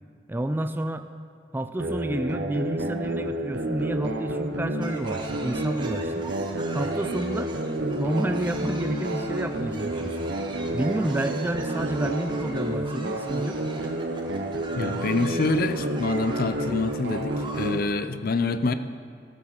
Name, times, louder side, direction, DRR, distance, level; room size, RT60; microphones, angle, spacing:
voice 1, 0.3-1.1 1.5-6.2 6.7-7.5 7.9-10.2 10.7-13.6, right 1 dB, 10° right, 8 dB, 0.3 m, -30 dB
sound 1, 1.8-17.8, right 1 dB, 85° right, 0.8 m, -30 dB
sound 2, 4.8-17.7, right 2 dB, 25° right, 1.0 m, -42 dB
voice 2, 14.8-18.7, left 3 dB, 55° left, 11 dB, 0.5 m, -26 dB
14.5 x 6.2 x 5.9 m, 2.3 s
head